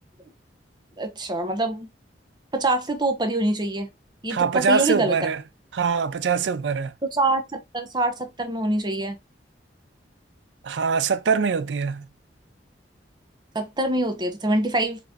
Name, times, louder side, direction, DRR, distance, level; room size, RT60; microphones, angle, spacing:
voice 1, 1.0-1.9 2.5-3.9 4.2-5.1 7.1-9.2 13.5-15.0, right 2 dB, 25° right, 0.8 m, -25 dB
voice 2, 4.3-5.4 5.7-6.9 10.6-12.1, right 5 dB, 80° right, 0.5 m, -23 dB
4.3 x 3.2 x 2.7 m
head